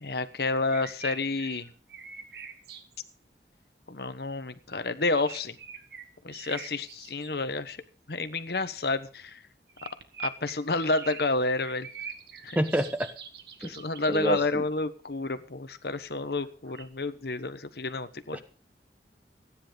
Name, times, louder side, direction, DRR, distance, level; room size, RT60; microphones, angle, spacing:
voice 1, 0.0-1.7 3.9-5.5 6.2-7.8 8.1-9.4 10.2-11.9 12.4-12.6 13.6-18.4, left 3 dB, 65° left, 11 dB, 1.1 m, -30 dB
sound 1, 0.5-3.1 5.1-7.3 9.7-14.3 16.4-16.8, right 6 dB, 65° right, 1.6 m, -43 dB
voice 2, 12.5-13.1 13.6-13.7 14.1-14.6 18.3-18.4, right 1 dB, 10° right, 8 dB, 1.1 m, -28 dB
15.0 x 10.0 x 5.2 m, 0.40 s
head